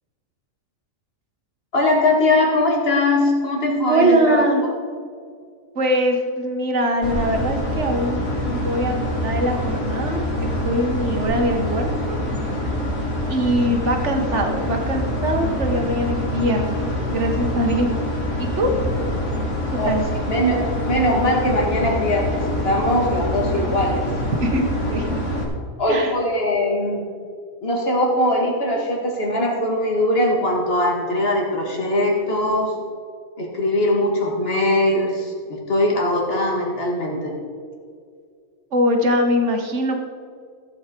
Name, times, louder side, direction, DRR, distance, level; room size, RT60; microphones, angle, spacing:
voice 1, 1.7-4.5 19.7-19.9 20.3-24.1 25.8-27.1 27.6-32.7 33.4-37.3, left 1 dB, 45° left, 0 dB, 2.2 m, -21 dB
voice 2, 3.9-4.6 5.7-12.2 13.3-17.9 18.4-18.7 19.8-20.0 23.5-23.7 24.4-25.2 25.9-26.1 38.7-40.0, equal, 60° right, 4 dB, 1.6 m, -22 dB
sound 1, 7.0-25.4, left 1 dB, 60° left, 2.2 m, -25 dB
15.0 x 8.1 x 4.5 m, 2.2 s
omnidirectional pair, 1.4 m